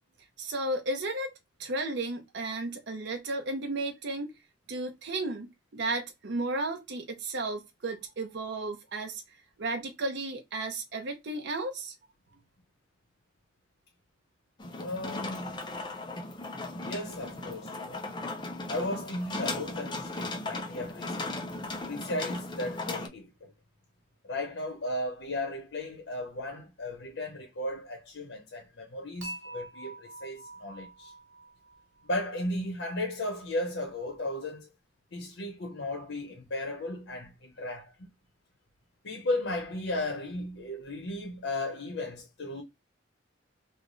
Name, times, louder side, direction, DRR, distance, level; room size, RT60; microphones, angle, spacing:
voice 1, 0.4-4.3 4.7-9.2 9.6-11.9, right 2 dB, 60° right, 0.6 m, -34 dB
sound 1, 14.6-23.1, left 2 dB, 25° left, 0.5 m, -37 dB
voice 2, 14.8-15.6 16.8-18.1 18.7-21.2 21.9-23.5 24.2-31.1 32.0-34.7 35.1-37.9 39.0-42.6, left 1 dB, 70° left, 0.7 m, -35 dB
Dishes pots and pans / Chink clink, 29.2-32.4, right 2 dB, 85° right, 1.1 m, -45 dB
3.3 x 2.0 x 3.8 m
head